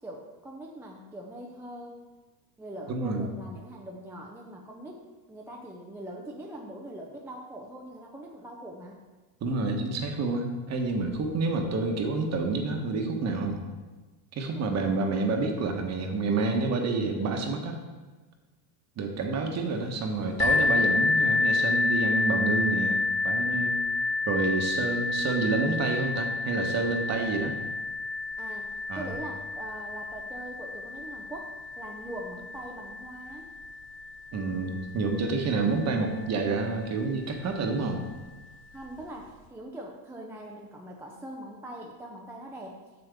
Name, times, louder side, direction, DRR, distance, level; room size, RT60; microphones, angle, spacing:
voice 1, 0.0-2.0 2.6-9.0 14.7-14.9 28.4-33.5 38.7-42.8, right 1 dB, 5° right, -1 dB, 0.5 m, -42 dB
voice 2, 2.9-3.2 9.4-13.6 14.4-17.8 19.0-23.8 24.3-27.5 28.9-29.1 34.3-38.0, right 3 dB, 30° right, 4 dB, 1.1 m, -28 dB
sound 1, 20.4-35.9 36.7-36.8 37.4-37.5, left 3 dB, 25° left, 1.7 m, -29 dB
7.8 x 6.9 x 3.5 m, 1.2 s
supercardioid pair, 130°, 50 cm